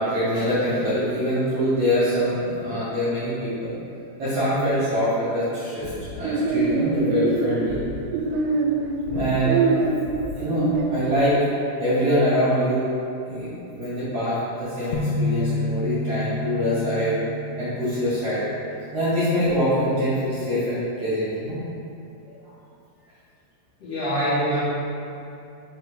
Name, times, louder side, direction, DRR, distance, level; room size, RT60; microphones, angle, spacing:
voice 1, 0.0-3.7 4.2-7.8 9.1-9.7 10.3-11.4 11.8-12.9 13.2-18.5 18.9-21.6, equal, 65° right, -13 dB, 1.6 m, -24 dB
sound 1, 5.8-10.9, right 4 dB, 85° right, 2.8 m, -24 dB
sound 2, 14.9-18.9, left 2 dB, 85° left, 2.8 m, -29 dB
voice 2, 23.8-24.6, equal, 60° left, -13 dB, 1.7 m, -24 dB
6.4 x 3.2 x 4.8 m, 2.7 s
omnidirectional pair, 5.0 m